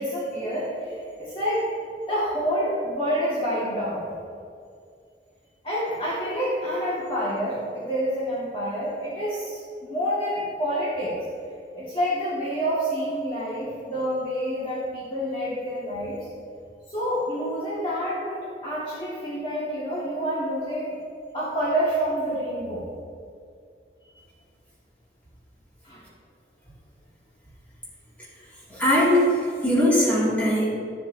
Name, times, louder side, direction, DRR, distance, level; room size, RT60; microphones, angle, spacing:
voice 1, 0.0-1.7 2.1-4.0 5.6-11.2 11.7-16.3 16.9-20.9 21.3-22.8 25.8-26.0, equal, 30° left, -8 dB, 1.6 m, -28 dB
voice 2, 28.7-30.7, equal, 10° left, -8 dB, 2.2 m, -20 dB
12.5 x 7.5 x 2.7 m, 2.3 s
head